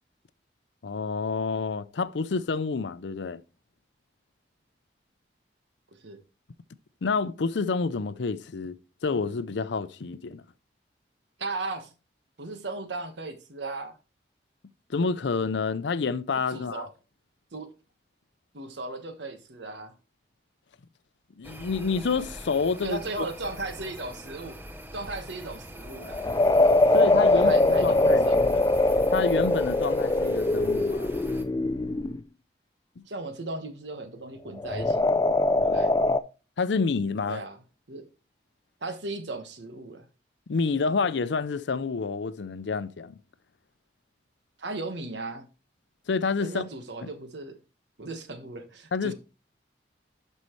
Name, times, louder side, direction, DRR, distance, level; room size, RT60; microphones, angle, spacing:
voice 1, 0.8-3.4 7.0-8.8 9.0-10.4 14.9-16.9 21.4-23.0 26.9-28.3 29.1-31.1 33.0-33.1 36.6-37.4 40.5-43.1 46.1-46.7 47.0-47.1 48.9-49.1, left 4 dB, 80° left, 0.5 m, -28 dB
voice 2, 11.4-11.9 12.4-13.9 16.5-16.9 17.5-17.7 18.5-19.9 22.8-24.6 24.9-26.2 27.3-28.8 33.0-35.0 35.6-35.9 37.3-37.6 37.9-38.0 38.8-40.1 44.6-45.4 46.4-47.6 48.0-49.1, right 2 dB, 80° right, 1.3 m, -36 dB
sound 1, 21.4-31.4, equal, 10° right, 0.7 m, -43 dB
sound 2, 26.0-32.2 34.6-36.2, left 2 dB, 20° left, 0.3 m, -22 dB
11.5 x 5.5 x 3.1 m
head